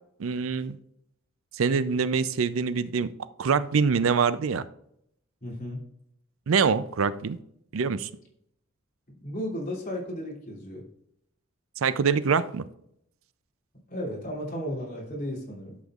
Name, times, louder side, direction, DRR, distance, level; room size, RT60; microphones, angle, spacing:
voice 1, 0.2-0.8 1.5-3.1 3.4-4.6 6.5-7.4 7.7-8.1 11.8-12.6, right 5 dB, 80° right, 14 dB, 0.5 m, -24 dB
voice 2, 5.4-5.8 9.1-10.9 13.9-15.8, equal, 45° left, -3 dB, 3.0 m, -34 dB
11.5 x 7.0 x 2.4 m, 0.72 s
head